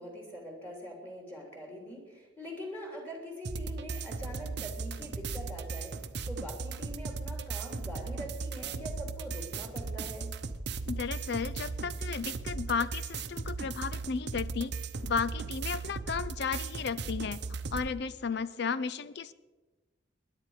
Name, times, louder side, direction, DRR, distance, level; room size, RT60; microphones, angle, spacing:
voice 1, 0.0-6.0 6.3-10.3, equal, 10° left, 0 dB, 3.2 m, -43 dB
sound 1, 3.4-17.9, right 4 dB, 60° right, 0.8 m, -37 dB
voice 2, 10.9-14.8 15.0-17.4 17.7-19.3, left 5 dB, 60° left, 15 dB, 0.5 m, -34 dB
21.0 x 10.5 x 4.9 m, 1.2 s
head